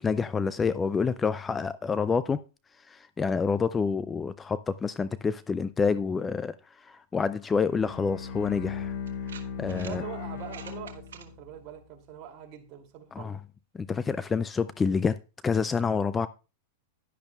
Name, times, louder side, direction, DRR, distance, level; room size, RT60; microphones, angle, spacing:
voice 1, 0.0-2.4 2.9-8.9 9.6-10.0 13.1-13.4 13.7-15.2 15.4-16.3, left 5 dB, 15° left, 0.4 m, -28 dB
Bowed string instrument, 7.6-11.6, left 6 dB, 70° left, 4.3 m, -37 dB
sound 1, 9.1-10.0 10.4-11.3, right 8 dB, 85° right, 1.4 m, -46 dB
voice 2, 9.6-13.4, right 9 dB, 45° right, 2.7 m, -43 dB
11.0 x 10.5 x 2.3 m
hypercardioid pair, 120°, 0 cm